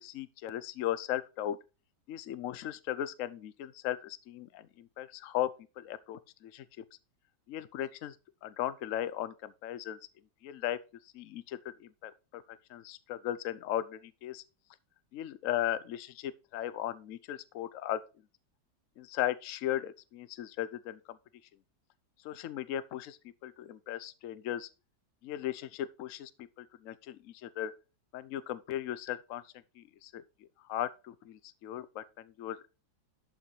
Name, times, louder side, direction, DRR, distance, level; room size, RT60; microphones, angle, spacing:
voice 1, 0.0-1.6 2.1-5.5 5.8-6.6 7.5-8.1 8.4-10.0 10.4-10.8 11.1-12.4 12.7-14.4 15.1-18.0 19.0-21.2 22.2-24.7 25.2-27.7 28.1-29.4 29.8-30.2 30.7-32.6, left 12 dB, 60° left, 0.9 m, -37 dB
12.0 x 5.7 x 3.2 m
omnidirectional pair, 1.9 m